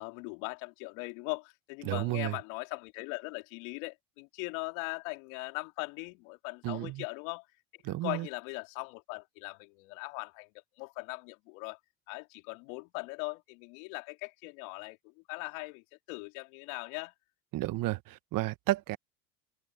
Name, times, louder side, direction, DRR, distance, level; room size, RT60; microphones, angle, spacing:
voice 1, 0.0-7.5 7.7-10.5 10.8-11.8 12.1-17.1, left 29 dB, 70° left, 3.3 m, -40 dB
voice 2, 1.8-2.3 6.6-7.0 7.8-8.3 17.5-19.0, right 17 dB, 50° right, 1.2 m, -32 dB
open air
supercardioid pair, 95°, 42 cm